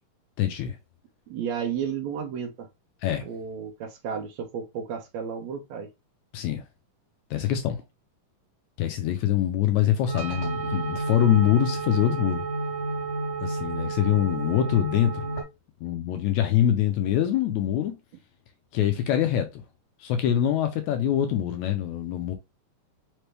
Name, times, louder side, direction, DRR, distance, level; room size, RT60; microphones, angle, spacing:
voice 1, 0.4-0.8 3.0-3.2 6.3-6.6 7.3-7.8 8.8-12.4 13.4-15.4 15.8-18.0 18.7-19.6 20.0-22.3, left 11 dB, 80° left, 1.7 m, -24 dB
voice 2, 1.3-2.7 3.3-5.9, right 7 dB, 75° right, 1.7 m, -32 dB
sound 1, 10.1-15.4, right 2 dB, 10° left, 1.4 m, -30 dB
5.2 x 3.1 x 3.2 m
omnidirectional pair, 3.8 m